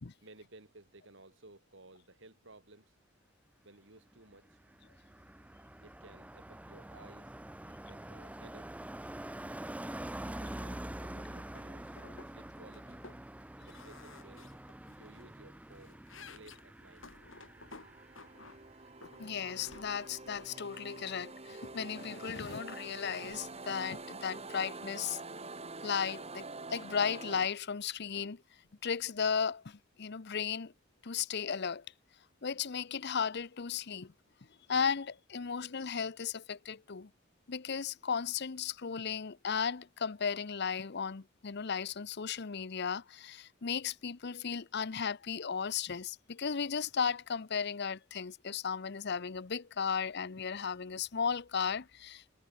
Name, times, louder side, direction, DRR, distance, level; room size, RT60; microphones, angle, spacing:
voice 1, 0.2-3.0 3.6-4.8 5.8-7.4 7.6-8.9 10.2-13.0 13.6-14.5 15.0-16.0 16.3-17.3, right 2 dB, 70° right, 5.4 m, -57 dB
Car passing by, 4.1-18.9 19.2-19.5, right 1 dB, 5° right, 0.6 m, -46 dB
sound 1, 11.5-11.7 12.0-12.3 12.6-13.2 13.6-15.2 15.6-18.6 19.0-20.5, left 4 dB, 75° left, 3.4 m, -54 dB
sound 2, 16.8-27.5, right 3 dB, 35° right, 4.3 m, -47 dB
voice 2, 19.2-25.2 25.8-28.4 28.8-30.7 31.0-31.8 32.4-34.1 34.7-37.1 37.5-52.4, left 6 dB, 60° left, 0.8 m, -35 dB
head